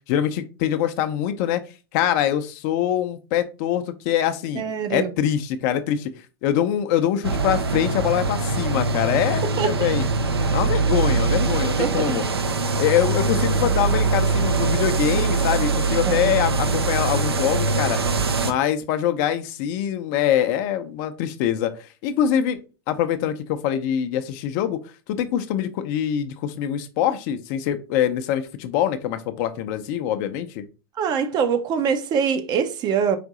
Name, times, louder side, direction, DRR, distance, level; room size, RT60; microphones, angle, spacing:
voice 1, 0.1-1.6 1.9-4.6 4.9-6.1 6.4-10.1 10.5-12.2 12.8-18.0 18.3-22.6 22.9-24.8 25.1-30.6, left 10 dB, 45° left, 0.5 m, -24 dB
voice 2, 4.6-5.1 9.6-9.9 11.8-12.2 13.6-13.7 16.1-16.2 31.0-33.2, right 7 dB, 30° right, 0.5 m, -24 dB
sound 1, 7.2-18.5, right 3 dB, 80° right, 0.5 m, -22 dB
5.0 x 2.6 x 3.6 m
figure-of-eight pair, 85°, 13 cm